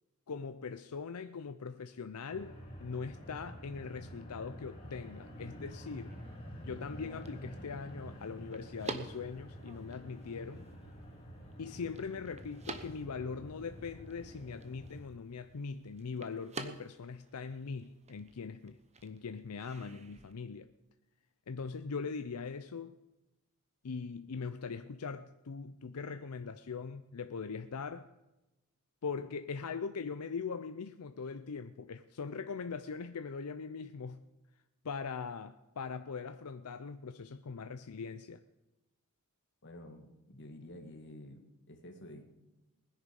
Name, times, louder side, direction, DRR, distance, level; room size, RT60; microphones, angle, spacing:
voice 1, 0.3-6.2 6.6-10.7 11.6-18.8 19.0-20.7 21.5-23.0 23.8-28.1 29.0-34.2 34.8-38.4, left 5 dB, 90° left, 0.6 m, -41 dB
sound 1, 2.3-15.0, equal, 25° left, 3.4 m, -49 dB
sound 2, 4.8-20.3, right 3 dB, 30° right, 1.0 m, -50 dB
voice 2, 39.6-42.2, left 1 dB, 55° left, 2.0 m, -50 dB
20.0 x 10.0 x 5.3 m
head